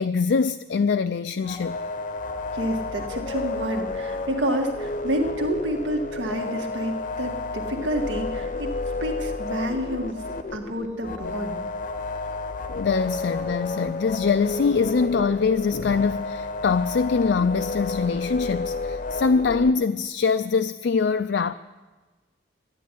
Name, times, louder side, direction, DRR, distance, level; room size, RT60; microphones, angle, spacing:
voice 1, 0.0-1.8 12.7-21.5, left 5 dB, 65° left, 0.4 m, -23 dB
sound 1, 1.4-19.7, left 3 dB, 45° left, 0.7 m, -31 dB
voice 2, 2.5-8.7 9.0-10.2 10.5-11.6, right 1 dB, 75° right, 2.0 m, -29 dB
13.0 x 9.3 x 10.0 m
head